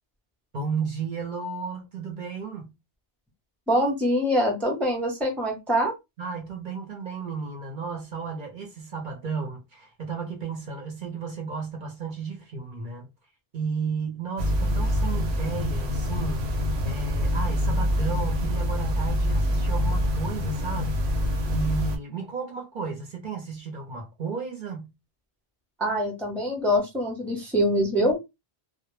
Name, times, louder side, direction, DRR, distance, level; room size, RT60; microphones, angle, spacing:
voice 1, 0.5-2.7 6.2-13.1 13.5-16.5 16.8-21.0 21.5-24.9, right 5 dB, 55° right, 0.7 m, -33 dB
voice 2, 3.7-5.9 25.8-28.3, equal, ahead, 0.6 m, -24 dB
sound 1, 14.4-22.0, left 1 dB, 80° right, 0.8 m, -25 dB
2.1 x 2.0 x 3.0 m
omnidirectional pair, 1.1 m